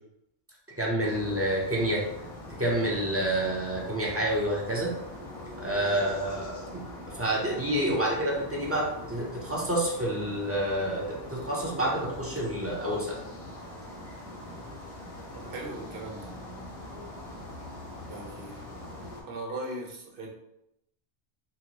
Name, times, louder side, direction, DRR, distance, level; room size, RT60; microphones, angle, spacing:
voice 1, 0.8-2.1 2.6-4.9 5.6-6.8 7.1-13.2, right 1 dB, 20° right, -4 dB, 0.5 m, -28 dB
sound 1, 1.0-19.2, left 1 dB, 40° left, 0.7 m, -43 dB
voice 2, 15.3-16.3 18.1-18.7 19.3-20.3, right 2 dB, 60° right, 0 dB, 0.8 m, -39 dB
3.9 x 2.1 x 2.9 m, 0.82 s
omnidirectional pair, 1.1 m